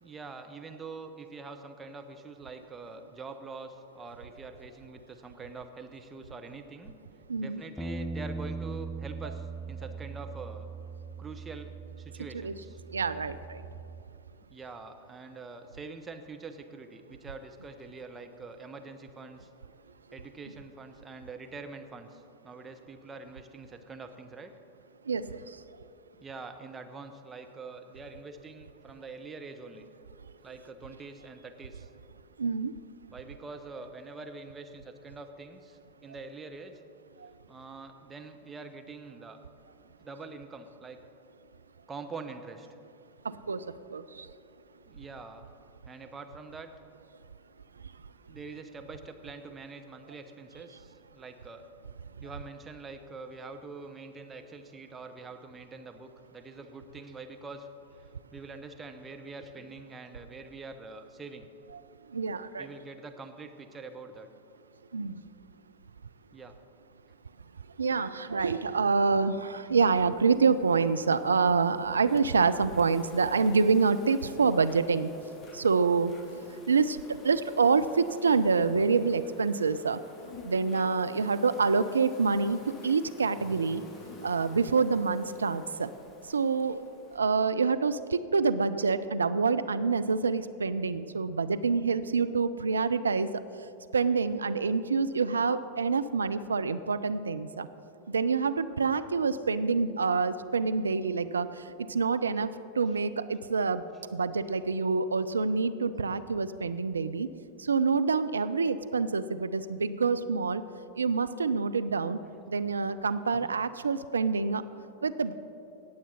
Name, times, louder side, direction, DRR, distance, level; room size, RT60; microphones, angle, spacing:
voice 1, 0.0-6.9 7.4-10.7 11.2-12.8 14.5-19.5 20.1-24.5 26.2-29.8 30.4-31.9 33.1-36.8 37.5-39.4 39.8-41.0 41.9-42.7 44.9-45.5 45.9-46.7 48.3-51.7 52.2-57.7 58.3-61.5 62.6-64.3 66.3-66.5 102.4-102.5 103.9-104.0 112.2-112.4 113.3-113.6, right 3 dB, 15° right, 6 dB, 0.8 m, -45 dB
voice 2, 7.3-7.6 12.4-12.6 12.9-13.6 25.1-25.6 32.4-32.8 37.2-37.3 43.2-44.3 62.1-62.7 64.9-65.2 67.8-75.1 75.5-77.0 77.2-80.0 80.4-82.6 82.8-83.8 84.2-85.9 86.2-86.8 87.1-93.3 93.9-97.7 98.1-103.8 104.1-107.3 107.6-110.6 110.9-112.2 112.5-114.6 115.0-115.3, right 4 dB, 75° right, 12 dB, 0.4 m, -27 dB
Bass guitar, 7.8-14.0, right 4 dB, 5° left, 0.5 m, -40 dB
Insect, 69.8-87.2, left 3 dB, 25° left, 1.2 m, -51 dB
18.0 x 7.4 x 4.1 m, 2.6 s
figure-of-eight pair, 90°, 0 cm